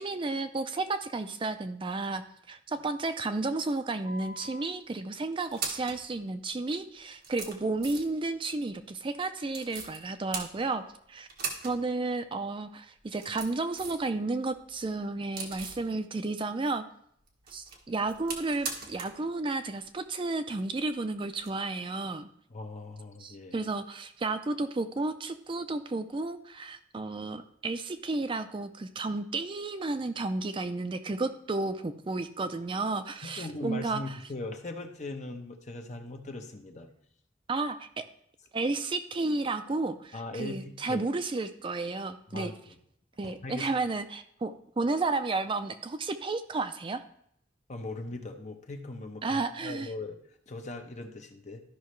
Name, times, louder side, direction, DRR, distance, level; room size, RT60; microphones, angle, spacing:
voice 1, 0.0-2.2 2.5-10.8 11.1-11.3 11.6-16.8 17.5-22.3 23.2-34.2 37.5-38.0 38.5-42.5 43.2-47.0 49.2-49.9, right 3 dB, 30° right, 9 dB, 0.4 m, -32 dB
sound 1, 4.0-4.7 5.3-6.0 6.7-6.8 7.2-8.2 9.5-10.0 10.3-11.0 11.3-11.8 12.1-12.2 13.0-14.1 14.4-15.9 17.3-19.2 19.5-19.6 21.4-21.5, right 4 dB, 55° right, 1.4 m, -39 dB
voice 2, 22.5-23.7 33.2-36.9 40.1-41.0 42.3-42.8 43.2-43.7 47.7-50.2 50.5-51.6, left 2 dB, 40° left, 4 dB, 0.9 m, -40 dB
13.0 x 5.6 x 3.1 m, 0.68 s
head